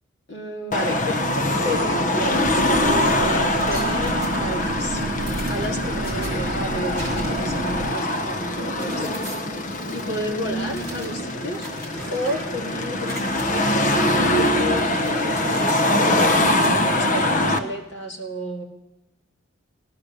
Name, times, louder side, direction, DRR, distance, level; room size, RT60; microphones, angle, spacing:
voice 1, 0.3-5.0 5.5-9.2 9.9-11.7 12.1-18.6, equal, 60° left, 1 dB, 2.1 m, -31 dB
Car passing by / Traffic noise roadway noise / Engine, 0.7-17.6, left 1 dB, 40° left, 0.7 m, -23 dB
sound 1, 2.3-7.9, right 2 dB, 50° right, 0.8 m, -30 dB
sound 2, 3.6-4.7 5.2-6.3 6.9-7.5 7.9-9.4 9.9-10.0 10.7-12.7 13.0-13.4 14.0-14.5 14.8-15.8 16.2-16.7, right 1 dB, 15° left, 3.0 m, -40 dB
17.5 x 11.5 x 6.6 m, 1.0 s
head